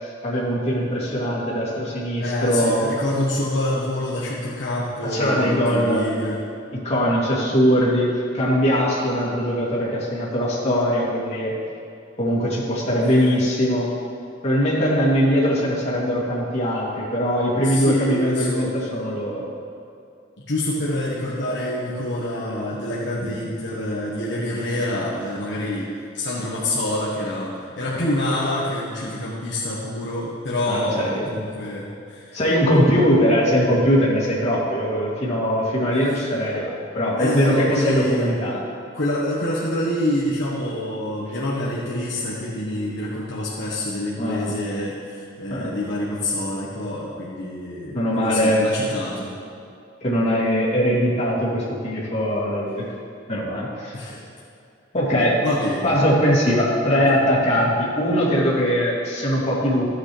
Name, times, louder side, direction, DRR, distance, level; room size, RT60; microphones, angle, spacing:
voice 1, 0.0-2.9 5.0-6.1 6.8-11.5 12.2-13.9 14.4-19.4 23.2-23.3 27.9-28.0 30.7-31.3 32.3-38.6 44.2-44.5 45.5-45.7 47.9-48.7 50.0-52.8 53.3-54.2 54.9-55.4 55.8-59.8, equal, 35° left, -7 dB, 2.8 m, -21 dB
voice 2, 2.2-6.4 13.0-13.3 17.6-18.7 20.5-32.4 36.1-36.2 37.2-38.4 38.9-49.3 53.9-54.2 55.4-55.9, left 1 dB, 65° left, -6 dB, 1.4 m, -26 dB
14.5 x 8.4 x 3.3 m, 2.5 s
head